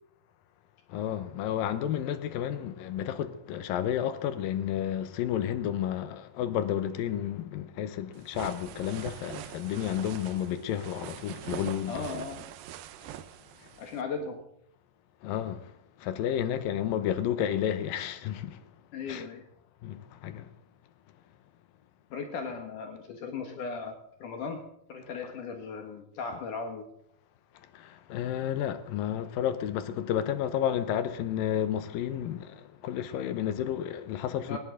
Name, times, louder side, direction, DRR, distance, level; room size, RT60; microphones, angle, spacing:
voice 1, 0.9-12.1 13.0-13.2 13.6-13.7 15.2-18.7 19.1-19.3 19.8-20.5 25.2-25.3 27.7-34.6, left 10 dB, 85° left, 2.7 m, -31 dB
sound 1, 8.1-14.0, right 12 dB, 85° right, 2.5 m, -43 dB
voice 2, 11.9-12.4 13.8-14.4 18.9-19.4 22.1-26.8 34.5-34.6, left 4 dB, 70° left, 2.8 m, -37 dB
19.5 x 15.5 x 3.9 m
omnidirectional pair, 4.0 m